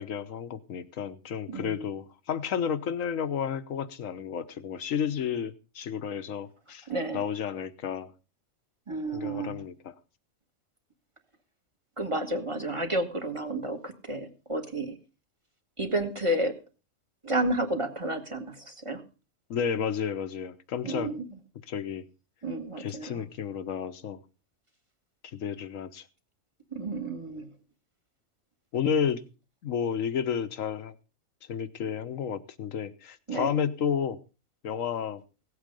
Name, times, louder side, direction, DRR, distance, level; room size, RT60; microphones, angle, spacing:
voice 1, 0.0-6.9 7.1-8.1 9.1-9.9 19.5-21.1 21.7-22.0 22.8-24.2 25.3-26.0 28.7-29.2 29.6-30.9 31.5-34.2 34.6-35.2, left 7 dB, 75° left, 1.3 m, -31 dB
voice 2, 1.5-1.9 6.9-7.2 8.9-9.6 12.0-15.0 15.8-16.6 17.2-19.0 20.8-21.3 22.4-23.2 26.7-27.5 33.3-33.5, right 1 dB, 25° right, 1.6 m, -31 dB
16.5 x 8.3 x 5.2 m
omnidirectional pair, 1.4 m